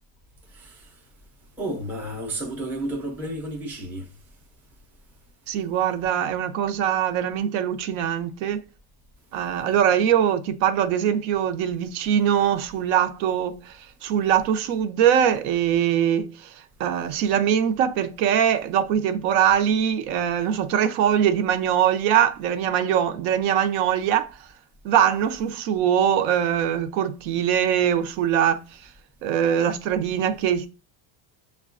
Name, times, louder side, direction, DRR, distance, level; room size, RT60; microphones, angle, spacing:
voice 1, 1.6-4.1, right 1 dB, 5° right, 0.3 m, -31 dB
voice 2, 5.5-8.6 9.3-16.5 16.8-24.3 24.8-28.6 29.2-30.7, right 9 dB, 80° right, 0.7 m, -22 dB
6.4 x 2.2 x 2.4 m
cardioid pair, 170°, 46 cm